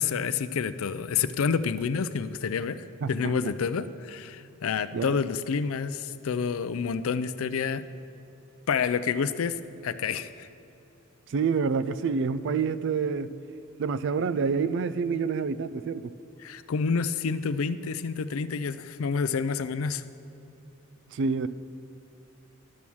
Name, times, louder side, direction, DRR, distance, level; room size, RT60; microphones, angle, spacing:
voice 1, 0.0-7.8 8.7-9.6 9.8-10.5 16.4-20.0, left 6 dB, 80° left, 14 dB, 0.4 m, -28 dB
voice 2, 3.0-3.3 4.9-5.1 11.3-13.3 13.7-16.1 21.1-21.5, right 5 dB, 60° right, 15 dB, 0.4 m, -27 dB
11.5 x 6.2 x 7.1 m, 2.7 s
head